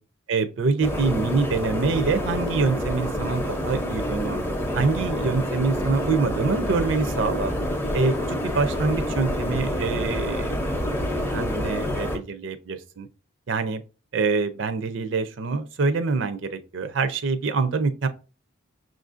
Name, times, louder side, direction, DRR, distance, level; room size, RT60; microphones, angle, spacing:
voice 1, 0.3-4.4 4.7-7.5 7.9-10.6 11.3-13.1 13.5-13.8 14.1-18.1, right 4 dB, 65° right, 0.4 m, -25 dB
sound 1, 0.8-12.2, equal, 10° left, 0.5 m, -27 dB
6.0 x 2.5 x 2.4 m
head